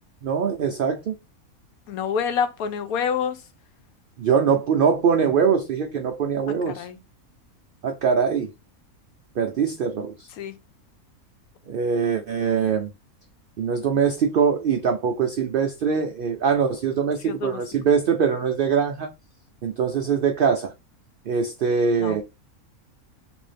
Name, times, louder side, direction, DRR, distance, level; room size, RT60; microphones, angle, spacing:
voice 1, 0.2-1.1 4.2-6.9 7.8-8.5 9.4-10.1 11.7-12.9 13.6-19.1 19.6-20.7 21.3-22.2, right 6 dB, 90° right, 0.4 m, -22 dB
voice 2, 1.9-3.4 6.7-7.0 10.4-10.5 17.2-17.6 22.0-22.2, left 7 dB, 85° left, 1.1 m, -27 dB
3.4 x 2.6 x 3.3 m
omnidirectional pair, 1.5 m